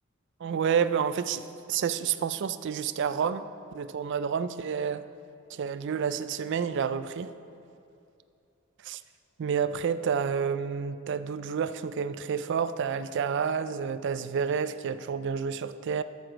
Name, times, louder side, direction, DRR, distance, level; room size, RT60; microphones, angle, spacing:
voice 1, 0.4-1.4 1.7-3.5 3.7-5.0 5.5-7.3 8.8-9.0 9.4-16.0, right 7 dB, 60° right, 13 dB, 0.3 m, -29 dB
13.5 x 4.9 x 5.1 m, 2.6 s
head